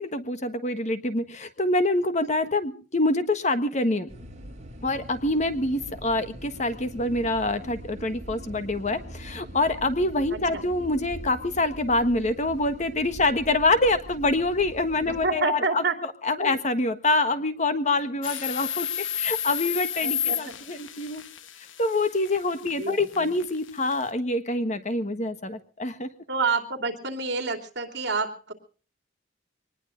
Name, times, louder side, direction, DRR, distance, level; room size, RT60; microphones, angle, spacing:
voice 1, 0.0-4.1 4.8-15.8 16.2-18.9 19.2-21.2 21.8-26.1, left 2 dB, 35° left, 10 dB, 1.4 m, -26 dB
sound 1, 4.1-15.3, equal, 35° right, 5.4 m, -42 dB
voice 2, 10.3-10.6 15.0-15.9 16.4-16.6 20.0-20.5 22.8-23.3 26.3-28.5, right 4 dB, 60° right, 5 dB, 3.0 m, -28 dB
sound 2, 18.2-24.1, left 9 dB, 75° left, 1.1 m, -32 dB
24.0 x 20.0 x 2.6 m, 0.39 s
head